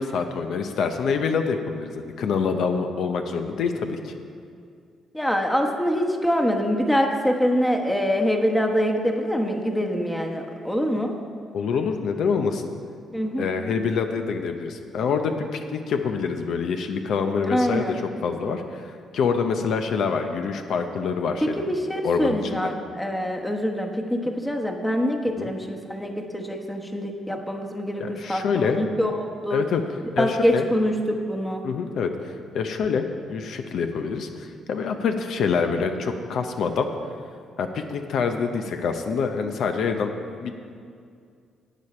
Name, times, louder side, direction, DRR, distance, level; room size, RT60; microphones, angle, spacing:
voice 1, 0.0-4.1 11.5-12.7 13.4-21.6 22.0-22.7 25.4-25.5 28.0-28.8 29.5-29.8 30.2-30.6 31.6-36.9 37.6-40.5, left 5 dB, 70° left, 6 dB, 0.6 m, -26 dB
voice 2, 5.1-11.1 13.1-13.5 17.4-18.0 21.4-29.6 30.2-31.6, equal, 5° left, 2 dB, 1.0 m, -25 dB
11.5 x 8.3 x 4.3 m, 2.3 s
cardioid pair, 90°, 0 cm